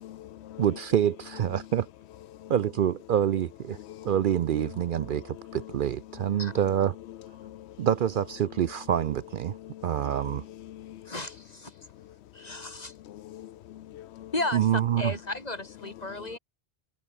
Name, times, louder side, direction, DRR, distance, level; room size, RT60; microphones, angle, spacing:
voice 1, 0.0-0.6 2.3-2.5 3.8-4.2 4.6-5.7 6.1-6.6 7.1-7.9 9.5-11.1 11.9-14.3 16.0-16.4, left 13 dB, 85° left, 0.9 m, -45 dB
voice 2, 0.6-1.9 2.5-3.8 4.0-6.9 7.8-9.5 9.8-10.4 14.5-15.1, right 10 dB, 60° right, 0.6 m, -26 dB
voice 3, 11.1-11.7 12.3-12.9 14.3-16.4, left 2 dB, 40° left, 3.1 m, -34 dB
omnidirectional pair, 1.1 m